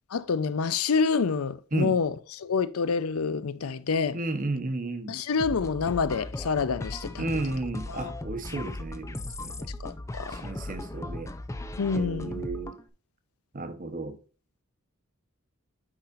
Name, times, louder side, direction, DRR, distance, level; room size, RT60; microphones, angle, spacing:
voice 1, 0.1-4.2 5.1-7.3 7.9-8.1 9.8-10.4 11.8-12.4, left 5 dB, 80° left, 0.5 m, -27 dB
voice 2, 4.1-5.2 7.2-9.5 10.3-11.3 11.9-12.8 13.5-14.2, right 2 dB, 40° right, 0.9 m, -33 dB
sound 1, 5.4-12.8, left 1 dB, 15° left, 0.4 m, -37 dB
9.7 x 4.0 x 2.4 m
head